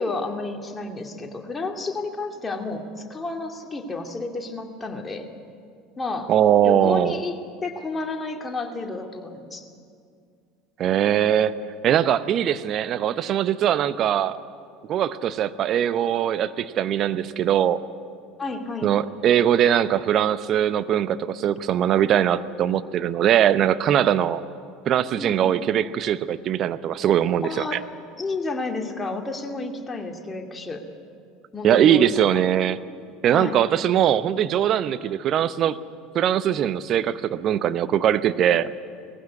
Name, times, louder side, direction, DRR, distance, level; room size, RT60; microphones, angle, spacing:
voice 1, 0.0-5.3 6.0-6.3 6.6-7.3 7.6-9.7 18.4-18.9 24.2-24.3 25.2-25.6 27.4-27.8 28.2-30.8 31.5-32.4 33.3-33.6, left 3 dB, 20° left, 3 dB, 2.5 m, -31 dB
voice 2, 6.3-7.2 10.8-11.5 11.8-14.4 14.9-17.8 18.8-24.4 24.9-27.8 31.6-32.8 33.2-35.8 36.1-38.7, right 10 dB, 45° right, 14 dB, 0.8 m, -21 dB
20.0 x 15.5 x 9.6 m, 2.3 s
figure-of-eight pair, 70°, 0 cm